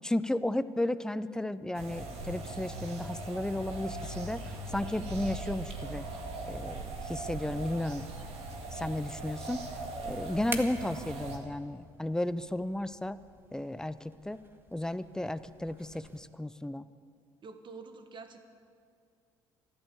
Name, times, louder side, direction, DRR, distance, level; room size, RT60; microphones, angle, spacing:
voice 1, 0.0-6.1 6.5-8.0 8.7-9.6 10.0-13.2 13.5-14.4 14.7-16.9, left 1 dB, 5° left, 14 dB, 0.5 m, -34 dB
sound 1, 1.7-11.4, right 2 dB, 60° right, 2.1 m, -40 dB
sound 2, 4.3-16.2, right 2 dB, 20° right, 1.5 m, -50 dB
voice 2, 17.4-18.4, right 4 dB, 40° right, 8 dB, 1.5 m, -47 dB
13.0 x 11.5 x 6.9 m, 2.2 s
hypercardioid pair, 65°, 12 cm